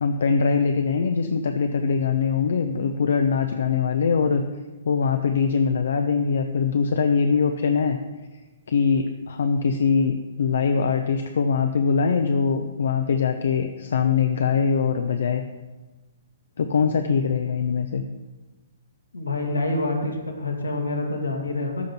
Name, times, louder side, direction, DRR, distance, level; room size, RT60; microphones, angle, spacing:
voice 1, 0.0-4.4 4.8-8.0 8.7-15.4 16.6-18.0, left 5 dB, 60° left, 7 dB, 0.7 m, -22 dB
voice 2, 19.1-21.9, left 2 dB, 80° left, 2 dB, 2.0 m, -27 dB
13.5 x 5.2 x 6.0 m, 1.2 s
figure-of-eight pair, 120°, 0 cm